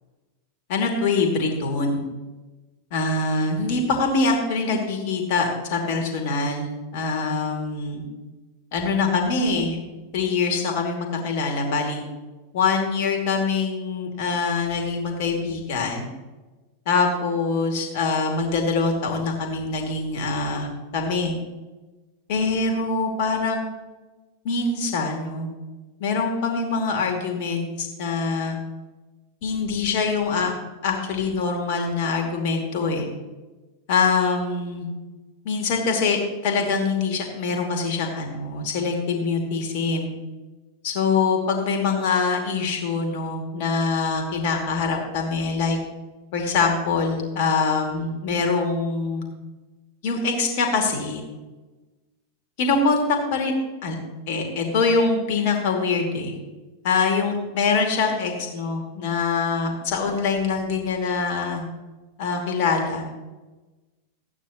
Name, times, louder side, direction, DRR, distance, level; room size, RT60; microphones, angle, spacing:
voice 1, 0.7-2.0 2.9-8.0 8.7-9.8 10.1-12.0 12.5-16.1 16.9-21.3 22.3-23.7 24.4-25.5 26.0-28.6 29.4-30.5 30.8-33.1 33.9-34.9 35.4-40.1 40.8-45.8 46.3-49.2 50.0-51.2 52.6-53.0 53.3-53.5 53.8-54.0 54.3-56.3 56.8-61.6 62.2-63.1, left 4 dB, 50° left, 2 dB, 2.4 m, -24 dB
14.5 x 9.1 x 2.9 m, 1.2 s
figure-of-eight pair, 90°, 0 cm